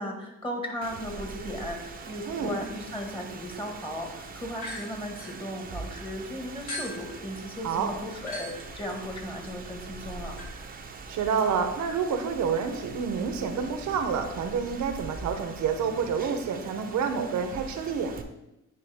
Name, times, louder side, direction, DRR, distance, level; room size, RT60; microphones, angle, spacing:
voice 1, 0.0-10.3, equal, 15° left, 1 dB, 1.6 m, -36 dB
Rain, 0.8-18.2, right 4 dB, 30° right, 0.6 m, -43 dB
sound 1, 4.6-6.0 6.7-15.0, left 1 dB, 70° left, 2.1 m, -44 dB
voice 2, 11.1-18.1, right 6 dB, 70° right, 6 dB, 0.8 m, -28 dB
9.4 x 3.3 x 3.5 m, 0.90 s
cardioid pair, 90°, 30 cm